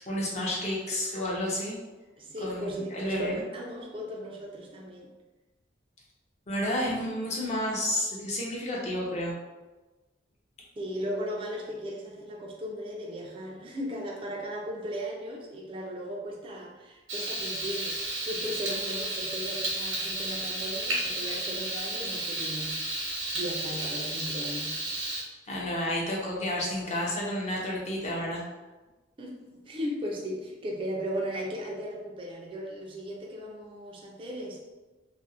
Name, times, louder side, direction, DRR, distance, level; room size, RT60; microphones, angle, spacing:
voice 1, 0.0-1.8 2.4-3.4 6.5-9.3 25.5-28.4, left 1 dB, 35° left, -4 dB, 0.6 m, -31 dB
voice 2, 2.2-5.1 10.8-24.9 29.2-29.4 29.7-34.6, equal, 25° right, -2 dB, 0.3 m, -37 dB
Frying (food), 17.1-25.2, right 2 dB, 85° right, 0.8 m, -32 dB
2.4 x 2.1 x 2.6 m, 1.2 s
head